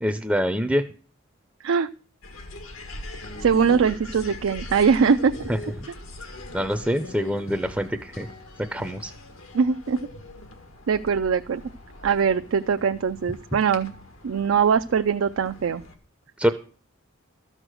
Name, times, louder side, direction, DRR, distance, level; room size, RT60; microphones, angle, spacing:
voice 1, 0.0-0.8 5.5-5.6 6.5-8.3 8.7-9.1 16.4-16.5, equal, 5° right, 8 dB, 0.5 m, -25 dB
sound 1, 2.2-16.0, left 2 dB, 85° left, 1.8 m, -41 dB
voice 2, 3.4-5.3 9.5-10.0 10.9-11.6 12.0-13.9 14.2-15.8, right 6 dB, 75° right, 8 dB, 0.4 m, -21 dB
13.0 x 6.5 x 6.2 m, 0.41 s
head